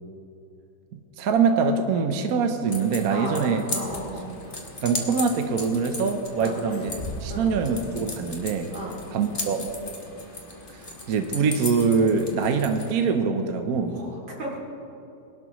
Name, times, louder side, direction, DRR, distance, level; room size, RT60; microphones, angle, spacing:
voice 1, 0.9-3.6 4.8-6.9 7.2-8.7 9.1-9.7 11.1-14.0, right 5 dB, 60° right, 5 dB, 1.1 m, -24 dB
sound 1, 2.7-12.9, left 2 dB, 30° left, 1.4 m, -36 dB
voice 2, 3.1-4.4 6.4-6.6 7.3-7.5 8.7-9.0 13.9-14.6, right 1 dB, 75° right, -3 dB, 3.5 m, -35 dB
22.5 x 12.0 x 3.1 m, 2.8 s
omnidirectional pair, 2.2 m